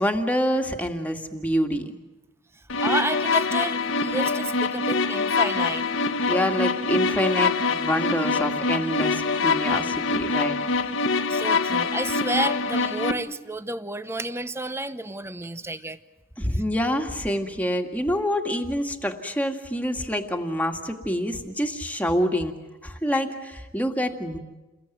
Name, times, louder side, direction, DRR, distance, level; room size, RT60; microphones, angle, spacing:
voice 1, 0.0-1.9 6.3-10.6 16.4-22.6 22.8-24.4, equal, 5° left, 3 dB, 2.1 m, -26 dB
sound 1, 2.7-13.1, left 4 dB, 65° left, 1.3 m, -24 dB
voice 2, 2.8-5.9 11.3-16.0 16.5-16.6, right 2 dB, 10° right, 12 dB, 0.9 m, -31 dB
29.5 x 21.5 x 9.3 m, 1.1 s
head